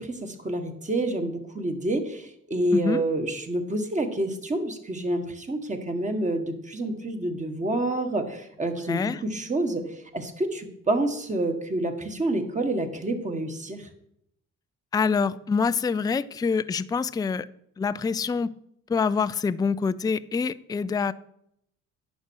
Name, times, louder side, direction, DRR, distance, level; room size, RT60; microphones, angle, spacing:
voice 1, 0.0-13.9, right 1 dB, 25° right, 5 dB, 1.7 m, -28 dB
voice 2, 2.7-3.0 8.9-9.2 14.9-17.5 17.8-18.5 18.9-21.1, left 5 dB, 15° left, 15 dB, 0.3 m, -25 dB
10.0 x 6.1 x 6.4 m, 0.76 s
cardioid pair, 90°, 30 cm